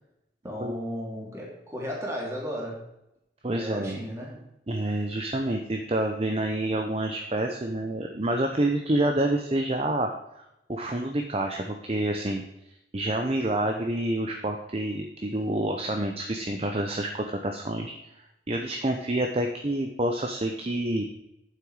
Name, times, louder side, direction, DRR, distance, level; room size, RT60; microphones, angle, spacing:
voice 1, 0.4-2.8 3.5-4.4, equal, 15° right, -4 dB, 2.9 m, -35 dB
voice 2, 3.4-4.0 4.7-10.1 10.4-10.5 10.7-12.4 12.9-21.1, right 1 dB, 35° right, 3 dB, 0.7 m, -28 dB
8.8 x 7.7 x 4.8 m, 0.87 s
head